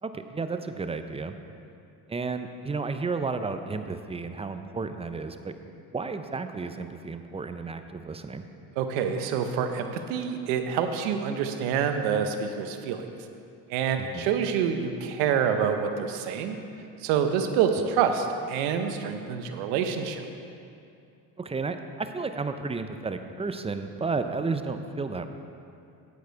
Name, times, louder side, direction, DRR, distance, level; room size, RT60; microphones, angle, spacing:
voice 1, 0.0-1.4 2.1-5.5 5.9-8.5 14.0-14.3 21.4-25.3, right 4 dB, 15° right, 8 dB, 0.5 m, -32 dB
voice 2, 8.8-13.0 13.7-16.6 17.0-20.2, right 7 dB, 85° right, 7 dB, 0.8 m, -27 dB
8.4 x 8.2 x 4.6 m, 2.6 s
supercardioid pair, 70°, 43 cm